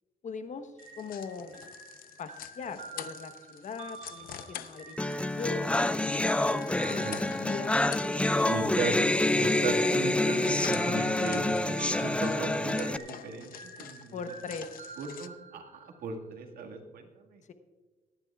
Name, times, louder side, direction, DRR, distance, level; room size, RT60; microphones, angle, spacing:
voice 1, 0.2-1.7 2.2-5.8 6.1-8.7 14.1-14.8, left 5 dB, 55° left, 9 dB, 1.0 m, -41 dB
sound 1, 0.8-15.3, left 10 dB, 75° left, 0.7 m, -47 dB
sound 2, 0.8-8.2 8.8-16.0, right 4 dB, 55° right, 3.0 m, -49 dB
sound 3, 5.0-13.0, left 2 dB, 10° left, 0.4 m, -27 dB
voice 2, 8.5-8.9 9.3-14.2 15.0-17.4, right 4 dB, 80° right, 3 dB, 1.8 m, -37 dB
24.0 x 10.5 x 2.4 m, 1.3 s
cardioid pair, 100°, 15 cm